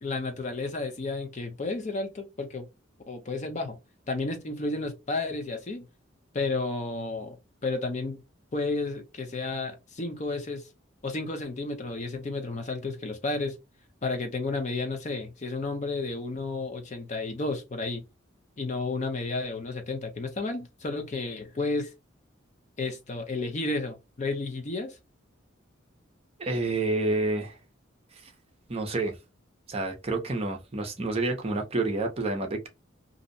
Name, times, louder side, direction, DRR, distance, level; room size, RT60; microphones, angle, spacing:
voice 1, 0.0-2.7 3.1-3.8 4.1-5.9 6.3-7.4 7.6-8.2 8.5-10.7 11.0-13.6 14.0-18.0 18.6-21.9 22.8-25.0, left 3 dB, 35° left, 0.5 m, -32 dB
voice 2, 26.4-27.6 28.2-28.3 28.7-29.1 29.7-32.7, right 2 dB, 30° right, 0.6 m, -29 dB
2.6 x 2.0 x 2.6 m
head